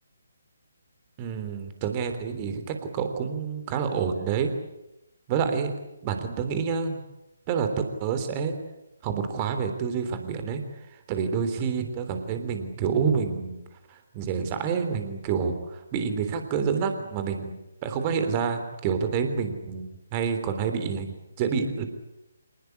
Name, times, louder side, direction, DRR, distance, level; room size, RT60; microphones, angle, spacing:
voice 1, 1.2-4.5 5.3-5.7 6.0-7.0 7.5-7.7 8.0-8.5 9.0-10.6 11.1-13.6 13.9-21.8, right 6 dB, 25° right, 7 dB, 3.4 m, -28 dB
27.0 x 19.5 x 9.8 m, 0.93 s
figure-of-eight pair, 140°, 0 cm